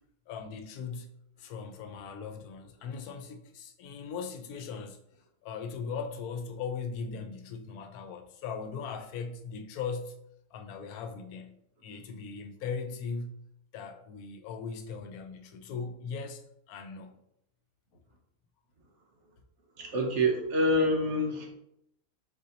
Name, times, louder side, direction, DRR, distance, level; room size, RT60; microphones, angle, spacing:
voice 1, 0.3-1.1 1.4-5.0 5.4-10.1 10.5-11.6 11.8-13.3 13.7-17.1, left 5 dB, 90° left, 1.1 m, -39 dB
voice 2, 19.8-21.5, equal, 55° right, 1.1 m, -26 dB
4.1 x 4.0 x 2.8 m
omnidirectional pair, 1.5 m